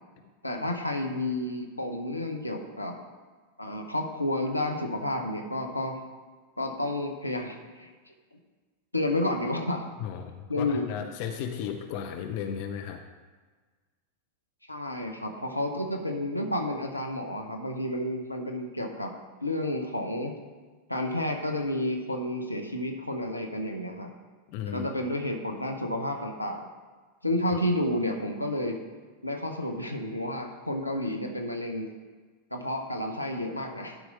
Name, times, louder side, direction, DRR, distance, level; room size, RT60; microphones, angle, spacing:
voice 1, 0.4-2.9 3.6-6.0 6.6-8.1 8.9-9.8 10.5-10.8 14.7-19.1 19.4-20.3 20.9-24.1 24.7-26.7 27.2-28.7 29.2-31.9 32.5-34.0, left 1 dB, 85° left, 2 dB, 0.9 m, -31 dB
voice 2, 10.0-13.0 24.5-24.9, left 8 dB, 45° left, 5 dB, 0.6 m, -35 dB
12.0 x 4.7 x 4.1 m, 1.4 s
figure-of-eight pair, 90°, 0 cm